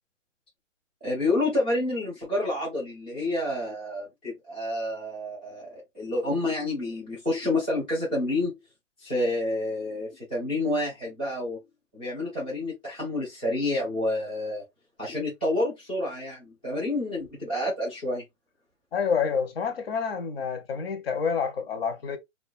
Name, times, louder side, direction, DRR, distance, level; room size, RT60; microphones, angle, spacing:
voice 1, 1.0-8.6 9.0-11.6 11.9-14.6 15.0-18.2, left 2 dB, 10° left, 0.4 m, -29 dB
voice 2, 18.9-22.2, left 6 dB, 50° left, 0.6 m, -28 dB
2.4 x 2.2 x 2.3 m
hypercardioid pair, 155°, 39 cm